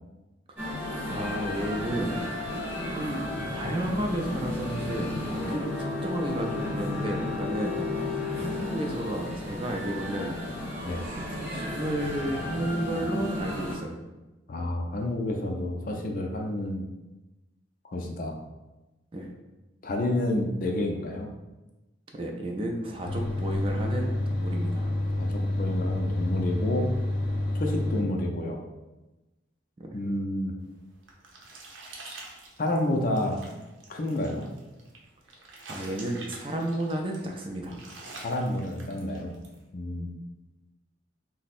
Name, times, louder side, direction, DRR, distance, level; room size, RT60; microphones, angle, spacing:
voice 1, 0.5-2.1 2.9-3.3 3.5-5.7 6.0-10.4 11.3-14.0 19.1-19.3 22.1-24.9 29.8-30.0 35.7-37.8, right 1 dB, 30° right, 1 dB, 0.4 m, -32 dB
sound 1, 0.6-13.8, left 2 dB, 10° right, 0.8 m, -33 dB
voice 2, 14.5-16.9 17.8-18.3 19.8-21.3 25.2-26.9 27.5-28.6 29.9-30.5 32.6-33.4 33.9-34.5 38.2-39.3 39.7-40.1, left 1 dB, 45° left, 1 dB, 0.4 m, -29 dB
sound 2, 23.0-28.0, left 1 dB, 85° left, 0.7 m, -28 dB
sound 3, 30.7-39.6, right 2 dB, 90° right, 0.7 m, -47 dB
3.3 x 2.1 x 4.2 m, 1.1 s
head